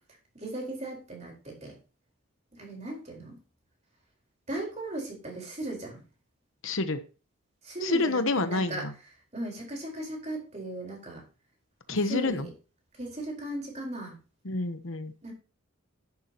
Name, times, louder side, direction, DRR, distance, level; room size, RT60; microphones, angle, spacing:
voice 1, 0.3-1.8 2.5-3.4 4.5-6.0 7.6-8.8 9.3-11.2 11.9-12.5 13.0-14.1 15.2-15.3, right 1 dB, 30° right, -1 dB, 4.6 m, -37 dB
voice 2, 6.6-7.0 7.8-8.9 11.9-12.5 14.4-15.1, left 3 dB, 65° left, 10 dB, 1.0 m, -28 dB
11.0 x 10.5 x 3.0 m, 0.34 s
head